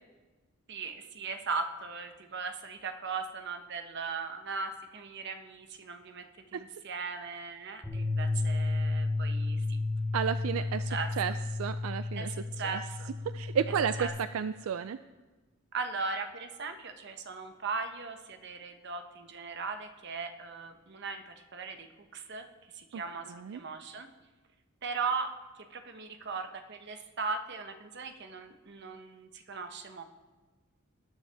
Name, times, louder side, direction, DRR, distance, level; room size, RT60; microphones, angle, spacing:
voice 1, 0.7-6.2 6.5-9.8 10.9-11.4 12.1-13.1 14.0-14.1 15.7-22.5 22.7-24.1 24.8-25.3 25.7-30.0, right 4 dB, 55° right, 7 dB, 1.0 m, -38 dB
Bass guitar, 7.8-14.1, left 2 dB, 15° left, 4.6 m, -32 dB
voice 2, 10.1-11.3 11.6-12.3 12.6-12.8 13.3-15.0 22.9-23.0 23.3-23.6, right 7 dB, 85° right, 12 dB, 0.4 m, -32 dB
20.5 x 9.0 x 3.5 m, 1.3 s
head